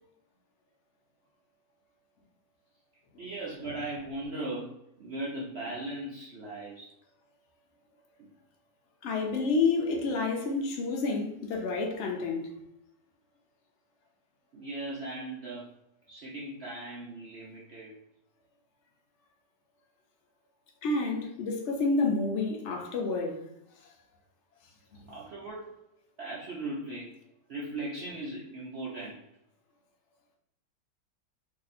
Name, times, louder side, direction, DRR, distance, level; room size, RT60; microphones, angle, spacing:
voice 1, 3.2-6.9 8.2-8.3 14.5-15.7 16.1-17.9 25.1-25.8 26.2-27.2 27.5-29.2, right 2 dB, 70° right, 0.6 m, -38 dB
voice 2, 9.0-12.5 20.8-23.4, left 3 dB, 75° left, 0.6 m, -29 dB
2.8 x 2.7 x 4.0 m
omnidirectional pair, 1.9 m